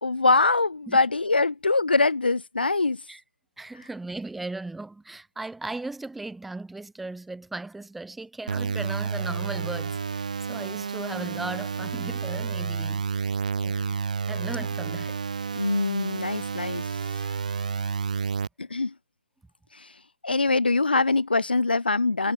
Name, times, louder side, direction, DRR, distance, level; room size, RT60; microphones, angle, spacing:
voice 1, 0.0-3.0 15.5-16.8 18.6-18.9 20.2-22.3, left 3 dB, 75° left, 0.6 m, -23 dB
voice 2, 3.6-13.9 14.3-15.2, right 2 dB, ahead, 1.3 m, -37 dB
sound 1, 8.5-18.5, right 5 dB, 45° right, 1.4 m, -30 dB
figure-of-eight pair, 155°, 5 cm